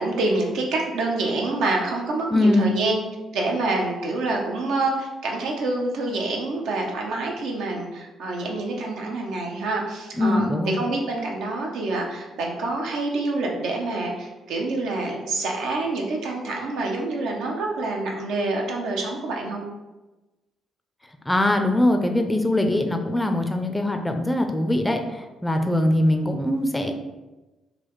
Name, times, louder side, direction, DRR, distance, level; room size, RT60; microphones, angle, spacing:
voice 1, 0.0-3.0 3.3-10.5 10.8-19.6, right 2 dB, 85° right, 0 dB, 0.7 m, -27 dB
voice 2, 2.3-2.7 10.2-10.7 21.3-26.9, left 1 dB, 10° left, 5 dB, 0.4 m, -22 dB
4.0 x 2.3 x 3.0 m, 1.1 s
cardioid pair, 90°, 0 cm